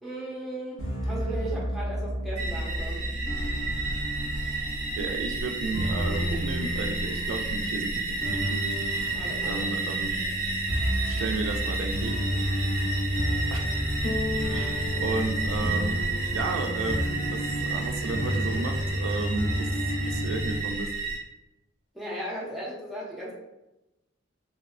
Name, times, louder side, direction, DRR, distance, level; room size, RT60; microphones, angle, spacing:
voice 1, 0.0-3.1 9.1-9.7 21.9-23.3, right 1 dB, ahead, -6 dB, 0.6 m, -36 dB
sound 1, 0.8-20.6, equal, 85° left, 0.9 m, -31 dB
sound 2, 2.4-21.2, right 3 dB, 40° right, 0.6 m, -32 dB
voice 2, 5.0-8.6 9.5-10.1 11.0-12.1 13.5-13.7 14.5-16.0 16.3-17.0 17.3-19.7 20.1-20.9, right 3 dB, 85° right, 6 dB, 0.3 m, -33 dB
sound 3, 7.4-19.7, left 3 dB, 50° left, 0.5 m, -42 dB
2.8 x 2.0 x 2.4 m, 0.95 s
head